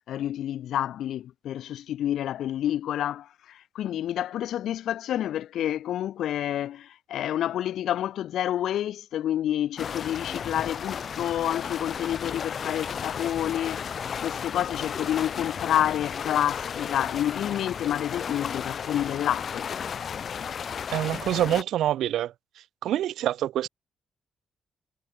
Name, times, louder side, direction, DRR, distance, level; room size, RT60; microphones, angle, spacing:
voice 1, 0.1-19.7, left 11 dB, 80° left, 3.3 m, -29 dB
sound 1, 9.8-21.6, left 7 dB, 45° left, 5.3 m, -34 dB
voice 2, 20.9-22.3 22.8-23.7, right 12 dB, 85° right, 0.5 m, -26 dB
cardioid pair, 140°, 0 cm